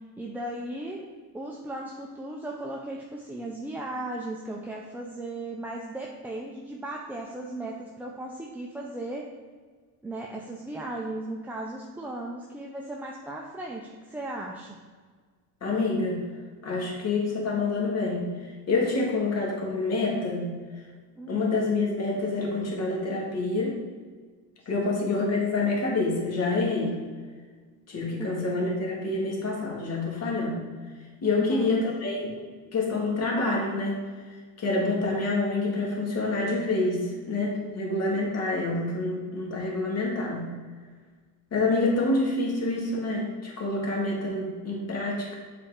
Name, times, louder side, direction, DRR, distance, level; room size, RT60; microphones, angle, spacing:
voice 1, 0.2-1.0 1.3-9.2 10.0-14.8 21.2-21.6 24.7-25.0 28.2-28.5 31.4-31.8, right 1 dB, 5° right, -2 dB, 0.4 m, -36 dB
voice 2, 15.6-16.2 16.6-18.3 18.7-20.5 21.3-23.8 24.7-27.0 27.9-30.6 31.2-32.4 32.7-34.0 34.6-40.5 41.5-45.4, left 3 dB, 35° left, -2 dB, 1.9 m, -27 dB
7.4 x 4.3 x 3.6 m, 1.5 s
cardioid pair, 120°, 44 cm